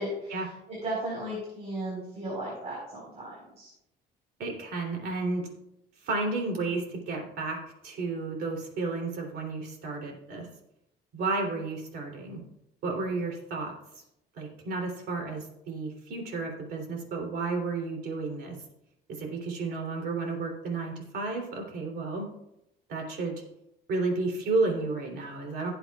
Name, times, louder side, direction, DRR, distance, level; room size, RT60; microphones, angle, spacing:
voice 1, 0.0-3.7, right 1 dB, 40° right, -4 dB, 4.3 m, -36 dB
voice 2, 4.4-5.5 6.0-10.5 11.1-12.4 12.8-13.7 14.3-18.6 19.1-22.3 22.9-23.4 23.9-25.7, right 3 dB, 70° right, 1 dB, 3.1 m, -32 dB
17.0 x 8.0 x 2.4 m, 0.83 s
cardioid pair, 110°, 17 cm